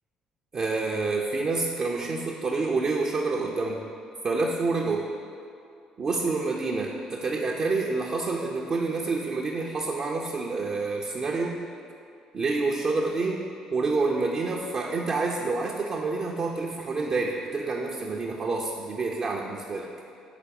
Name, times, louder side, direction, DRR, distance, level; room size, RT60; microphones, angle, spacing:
voice 1, 0.5-3.8 4.2-5.1 6.0-11.6 12.3-13.4 13.7-19.9, right 3 dB, 40° right, -1 dB, 0.5 m, -28 dB
4.9 x 4.1 x 5.2 m, 2.4 s
figure-of-eight pair, 50°, 2 cm